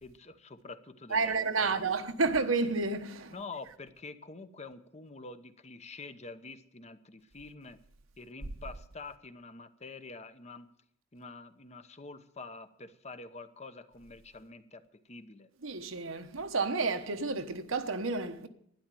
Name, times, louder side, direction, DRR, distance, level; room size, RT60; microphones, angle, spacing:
voice 1, 0.0-2.1 3.3-7.8 8.2-10.7 11.1-15.5, left 3 dB, 35° left, 0.9 m, -47 dB
voice 2, 1.1-3.3 15.6-18.5, right 4 dB, 85° right, 1.2 m, -30 dB
12.0 x 10.5 x 7.6 m
head